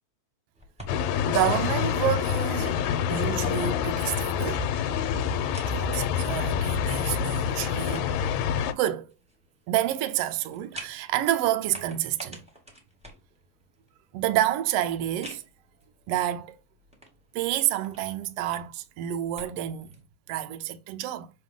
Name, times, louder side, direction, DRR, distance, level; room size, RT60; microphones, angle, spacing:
sound 1, 0.5-20.0, equal, 5° right, 1.1 m, -51 dB
sound 2, 0.9-8.7, left 8 dB, 80° left, 2.0 m, -27 dB
voice 1, 1.3-2.8 3.1-4.7 5.6-8.1 8.7-9.1 9.7-12.4 14.1-15.4 16.1-16.6 17.3-20.0 20.3-21.3, right 12 dB, 75° right, 1.6 m, -29 dB
6.4 x 4.0 x 3.6 m
omnidirectional pair, 3.3 m